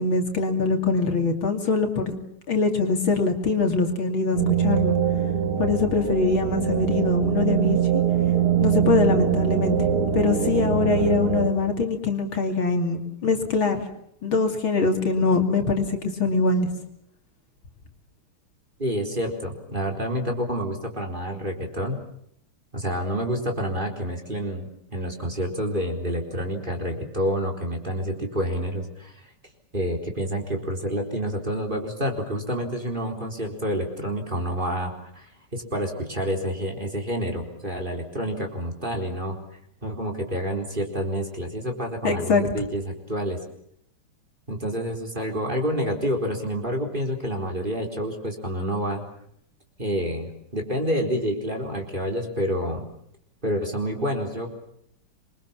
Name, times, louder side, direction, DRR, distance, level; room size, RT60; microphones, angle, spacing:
voice 1, 0.0-2.2 2.5-5.0 5.6-8.0 8.6-9.8 10.1-13.8 14.2-16.7 42.0-42.4, left 4 dB, 65° left, 4 dB, 3.5 m, -23 dB
sound 1, 4.3-11.5, right 8 dB, 80° right, 3.2 m, -23 dB
voice 2, 18.8-22.0 22.7-29.2 29.7-39.4 39.8-43.4 44.5-49.0 49.8-52.8 53.4-54.5, equal, 20° right, 3 dB, 4.2 m, -28 dB
26.5 x 23.5 x 7.3 m, 0.71 s
omnidirectional pair, 2.3 m